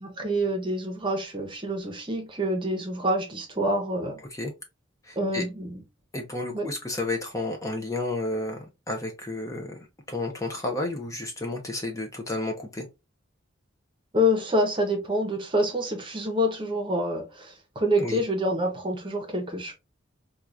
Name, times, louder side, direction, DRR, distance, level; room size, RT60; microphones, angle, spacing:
voice 1, 0.0-4.2 5.2-5.8 6.5-6.7 14.1-19.7, equal, 25° right, 0.7 m, -27 dB
voice 2, 5.0-5.4 6.1-9.8 10.1-12.9 18.0-18.2, left 2 dB, 15° left, 0.5 m, -31 dB
4.5 x 2.3 x 2.5 m
head